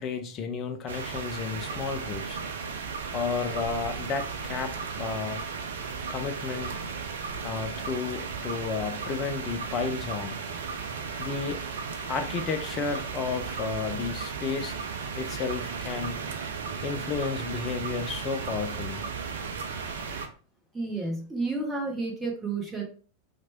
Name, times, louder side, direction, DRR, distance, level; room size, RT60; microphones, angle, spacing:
voice 1, 0.0-2.4 3.1-5.4 6.1-6.7 7.4-10.4 11.2-11.6 12.1-14.8 15.2-16.2 16.8-19.1, left 5 dB, 30° left, 6 dB, 0.4 m, -32 dB
sound 1, 0.9-20.3, right 5 dB, 65° right, 0.4 m, -35 dB
voice 2, 20.7-22.8, right 3 dB, 15° right, 1 dB, 0.9 m, -31 dB
2.8 x 2.2 x 2.9 m, 0.40 s
figure-of-eight pair, 90°, 0 cm